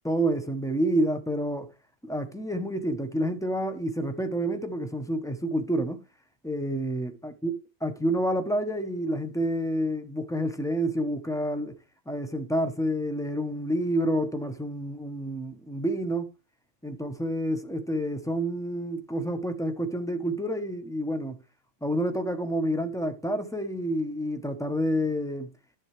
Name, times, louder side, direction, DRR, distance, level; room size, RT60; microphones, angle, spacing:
voice 1, 0.0-1.7 2.0-6.0 6.4-7.5 7.8-11.8 12.1-16.3 16.8-21.4 21.8-25.5, right 1 dB, 5° left, 0.4 m, -29 dB
11.0 x 7.5 x 3.3 m
omnidirectional pair, 2.0 m